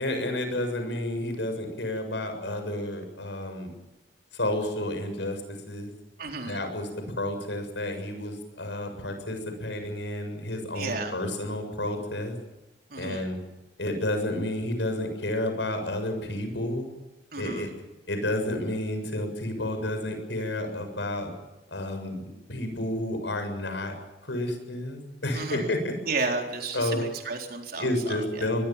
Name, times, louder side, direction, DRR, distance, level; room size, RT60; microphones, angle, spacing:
voice 1, 0.0-3.7 4.3-5.4 5.7-5.9 6.5-6.9 7.2-12.3 13.0-13.4 13.8-16.9 17.4-17.7 18.1-21.3 21.7-23.9 24.2-25.9 26.7-27.0 27.8-28.6, left 1 dB, 85° left, 6 dB, 7.0 m, -30 dB
voice 2, 6.2-6.6 10.7-11.2 12.9-13.3 17.3-17.7 25.3-25.7 26.1-28.5, right 3 dB, 55° right, 3 dB, 4.3 m, -33 dB
24.0 x 21.5 x 7.5 m, 1.0 s
head